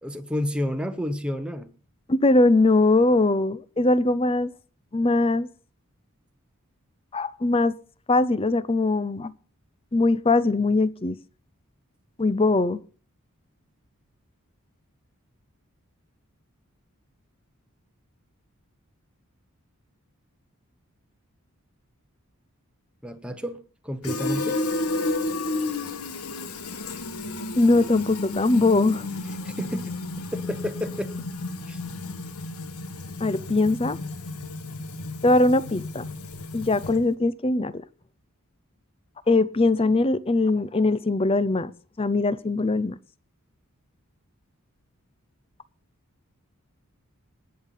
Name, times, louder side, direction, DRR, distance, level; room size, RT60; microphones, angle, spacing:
voice 1, 0.0-1.7 23.0-24.6 29.4-30.0 30.3-31.3 31.7-31.8, left 1 dB, 5° right, 1.0 m, -30 dB
voice 2, 2.1-4.5 4.9-5.5 7.1-7.8 8.1-9.3 9.9-11.2 12.2-12.8 27.6-29.0 33.2-34.0 35.2-36.0 36.5-37.8 39.3-41.7 42.0-43.0, left 2 dB, 25° left, 0.6 m, -21 dB
Fill (with liquid), 24.0-37.1, left 2 dB, 90° left, 1.3 m, -32 dB
19.0 x 6.7 x 5.5 m
head